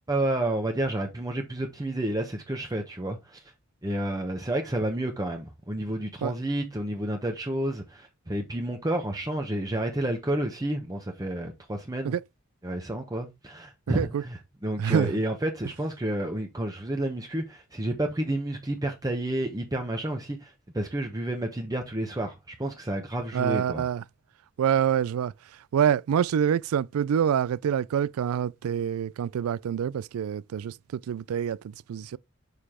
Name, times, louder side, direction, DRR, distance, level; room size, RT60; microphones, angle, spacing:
voice 1, 0.1-3.4 3.8-12.1 12.6-23.8, right 1 dB, 20° right, 0.9 m, -30 dB
voice 2, 13.9-14.2 14.8-15.1 23.3-24.0 24.6-25.3 25.7-32.2, right 8 dB, 85° right, 0.3 m, -26 dB
6.7 x 4.7 x 3.6 m
head